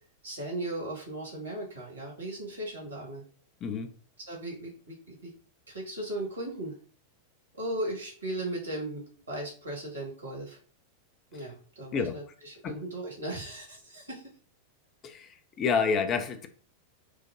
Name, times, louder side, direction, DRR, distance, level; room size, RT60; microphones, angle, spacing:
voice 1, 0.2-3.2 4.3-5.3 5.7-6.7 7.5-10.6 11.3-14.2, right 1 dB, 75° right, -3 dB, 1.6 m, -37 dB
voice 2, 15.0-16.5, left 5 dB, 30° left, 7 dB, 0.5 m, -29 dB
4.7 x 2.1 x 2.6 m, 0.41 s
figure-of-eight pair, 90°, 0 cm